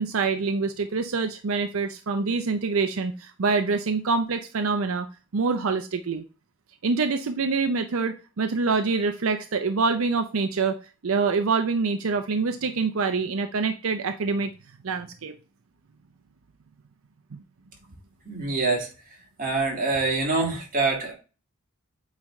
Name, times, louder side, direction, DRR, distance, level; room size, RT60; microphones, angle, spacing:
voice 1, 0.0-5.1 5.3-6.2 6.8-10.8 11.0-14.5 14.8-15.3 17.3-17.4, right 4 dB, 70° right, 7 dB, 0.6 m, -25 dB
voice 2, 18.3-21.1, right 3 dB, 40° right, 0 dB, 2.0 m, -26 dB
8.4 x 3.2 x 3.6 m, 0.34 s
head